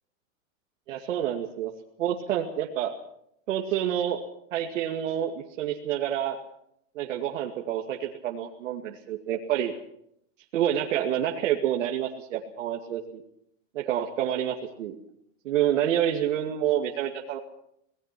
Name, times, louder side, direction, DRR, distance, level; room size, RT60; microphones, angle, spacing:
voice 1, 0.9-1.7 2.0-2.9 3.5-4.2 4.5-6.4 7.0-9.7 10.5-13.2 13.7-15.0 15.4-17.4, right 10 dB, 80° right, 1 dB, 2.4 m, -28 dB
27.0 x 18.5 x 6.0 m, 0.74 s
supercardioid pair, 160°, 38 cm